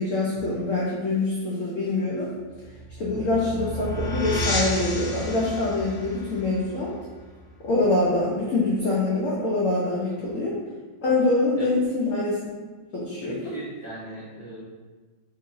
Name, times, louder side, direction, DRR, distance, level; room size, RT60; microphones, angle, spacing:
voice 1, 0.0-2.3 3.0-6.9 7.6-10.6 11.0-12.5 12.9-13.5, left 2 dB, 80° left, -6 dB, 0.7 m, -25 dB
sound 1, 2.5-7.9, equal, 65° left, 1.2 m, -32 dB
voice 2, 3.2-4.1 10.0-10.2 11.6-11.7 13.2-14.6, right 2 dB, 70° right, -10 dB, 0.5 m, -40 dB
3.0 x 2.8 x 2.6 m, 1.3 s
omnidirectional pair, 2.0 m